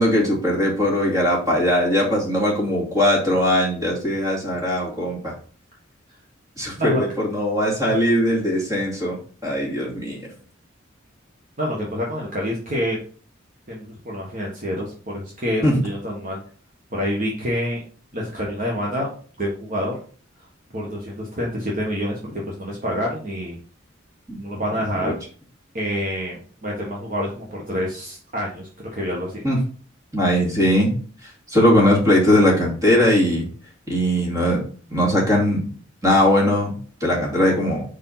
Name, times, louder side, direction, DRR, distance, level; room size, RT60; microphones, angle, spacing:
voice 1, 0.0-5.3 6.6-9.2 9.4-10.2 15.6-15.8 24.3-24.4 25.0-25.1 29.4-29.6 30.1-30.9 31.2-33.4 33.9-34.6 34.9-35.6 36.0-36.7 37.0-37.8, left 1 dB, 15° right, -3 dB, 2.6 m, -20 dB
voice 2, 11.6-13.0 13.7-16.4 16.9-17.8 18.1-19.1 19.4-19.9 20.7-22.2 22.5-23.6 24.4-25.1 25.7-29.4, equal, 40° right, -3 dB, 1.5 m, -27 dB
4.8 x 4.7 x 5.7 m, 0.41 s
head